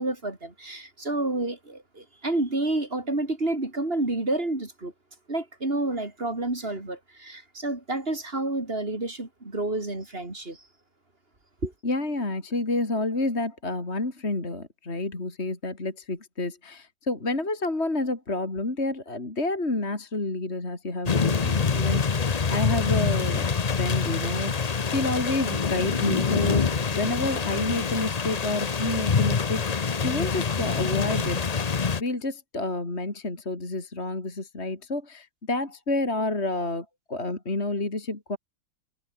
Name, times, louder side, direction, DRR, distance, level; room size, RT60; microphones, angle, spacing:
voice 1, 0.0-4.9 5.3-10.6 11.6-11.7, right 2 dB, 30° right, 4.4 m, -29 dB
voice 2, 11.8-23.5 23.8-31.4 32.0-38.4, left 2 dB, 30° left, 4.0 m, -29 dB
sound 1, 21.1-32.0, left 5 dB, 55° left, 0.4 m, -25 dB
omnidirectional pair, 2.1 m